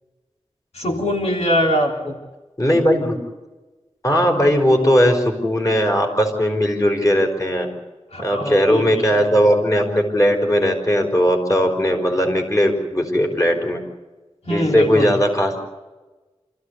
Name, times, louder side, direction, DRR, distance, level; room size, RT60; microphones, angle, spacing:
voice 1, 0.7-2.2 8.1-9.3 14.4-15.1, equal, 80° left, 0 dB, 3.7 m, -22 dB
voice 2, 2.6-3.2 4.0-7.7 8.2-13.8 14.5-15.6, equal, 30° left, 2 dB, 5.1 m, -18 dB
28.0 x 15.0 x 8.2 m, 1.2 s
wide cardioid pair, 75°, 11 cm